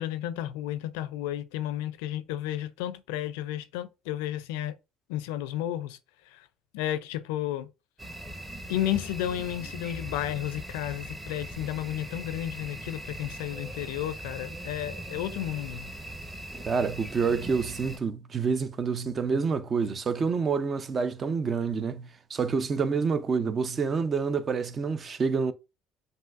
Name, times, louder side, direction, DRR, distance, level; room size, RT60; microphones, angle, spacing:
voice 1, 0.0-4.7 5.1-6.0 6.3-6.5 6.7-7.7 8.7-15.9, left 12 dB, 75° left, 0.4 m, -32 dB
sound 1, 8.0-18.0, right 1 dB, 10° right, 0.9 m, -40 dB
voice 2, 16.6-25.5, right 5 dB, 40° right, 0.5 m, -28 dB
7.3 x 2.6 x 2.4 m
hypercardioid pair, 70°, 0 cm